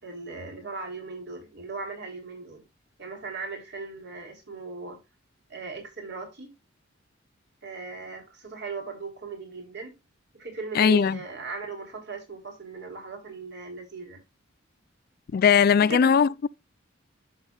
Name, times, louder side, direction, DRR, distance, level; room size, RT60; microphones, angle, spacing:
voice 1, 0.0-2.6 3.0-5.0 5.5-6.5 7.6-10.0 10.3-14.2 15.8-16.3, right 4 dB, 60° right, 3.6 m, -38 dB
voice 2, 10.8-11.2 15.3-16.5, left 7 dB, 50° left, 0.3 m, -19 dB
11.5 x 6.8 x 2.3 m
head